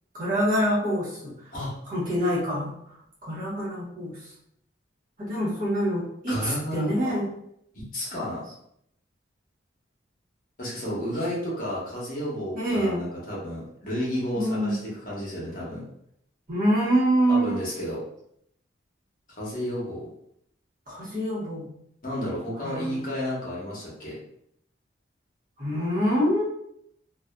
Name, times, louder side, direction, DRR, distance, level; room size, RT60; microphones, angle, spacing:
voice 1, 0.1-1.3 1.9-2.7 3.2-4.2 5.2-7.3 12.5-13.0 14.3-14.7 16.5-17.6 20.9-21.7 22.6-23.0 25.6-26.4, equal, 45° right, -8 dB, 1.0 m, -25 dB
voice 2, 6.3-7.2 7.7-8.4 10.6-15.9 17.3-18.0 19.4-20.1 22.0-24.2, equal, 45° left, -6 dB, 0.9 m, -32 dB
2.5 x 2.4 x 2.2 m, 0.72 s
head